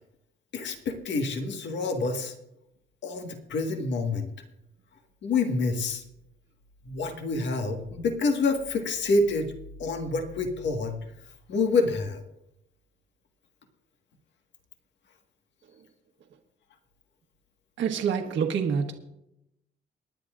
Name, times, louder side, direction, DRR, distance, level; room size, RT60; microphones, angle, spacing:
voice 1, 0.5-2.3 3.0-4.3 5.2-6.0 6.9-9.5 9.8-11.0 11.5-12.2, left 3 dB, 65° left, 3 dB, 1.7 m, -27 dB
voice 2, 17.8-18.9, right 7 dB, 70° right, 3 dB, 1.4 m, -26 dB
24.5 x 10.5 x 2.5 m, 0.83 s
cardioid pair, 90°, 20 cm